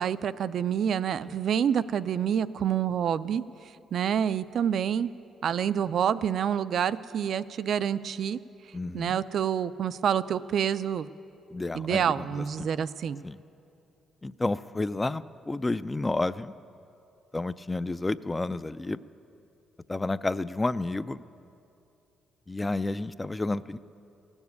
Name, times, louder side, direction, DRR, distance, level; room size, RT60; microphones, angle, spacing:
voice 1, 0.0-3.4 3.9-5.1 5.4-8.4 8.9-11.1 11.7-13.2, right 8 dB, 65° right, 14 dB, 0.3 m, -27 dB
voice 2, 8.7-9.2 11.5-12.4 13.2-13.4 14.2-16.5 17.3-19.0 19.9-21.2 22.5-23.8, left 2 dB, 20° left, 14 dB, 0.3 m, -30 dB
16.0 x 7.1 x 9.5 m, 2.7 s
cardioid pair, 90°, 0 cm